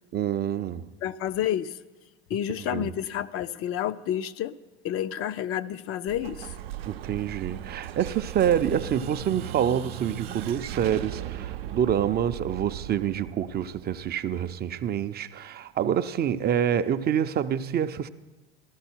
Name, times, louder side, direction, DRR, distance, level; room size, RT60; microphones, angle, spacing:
voice 1, 0.1-0.9 2.6-2.9 6.9-18.1, right 9 dB, 30° right, 0.5 m, -27 dB
voice 2, 1.0-1.7 2.3-4.6 4.8-6.5, left 11 dB, 45° left, 0.5 m, -29 dB
Explosion, 6.1-14.7, right 11 dB, 80° right, 0.6 m, -37 dB
14.0 x 13.0 x 4.5 m
hypercardioid pair, 85°, 31 cm